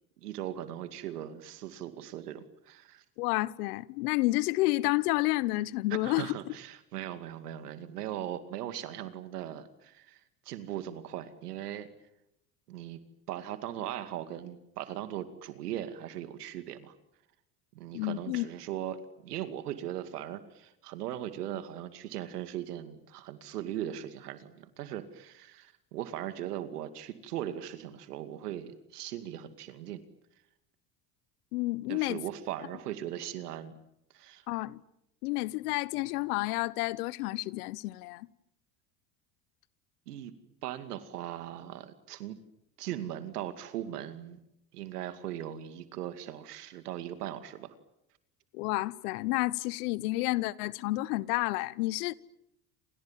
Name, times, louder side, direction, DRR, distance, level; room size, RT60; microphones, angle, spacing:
voice 1, 0.2-3.0 5.9-10.2 10.5-11.9 12.7-13.0 13.3-16.9 17.7-30.0 31.9-33.7 34.1-34.5 40.1-40.3 40.6-42.4 42.8-44.4 44.7-47.7, right 11 dB, 85° right, 2.4 m, -39 dB
voice 2, 3.2-6.4 17.9-18.5 31.5-32.2 34.5-34.8 35.2-38.3 48.5-52.1, left 20 dB, 75° left, 1.1 m, -30 dB
29.0 x 27.5 x 7.4 m
hypercardioid pair, 75°, 45 cm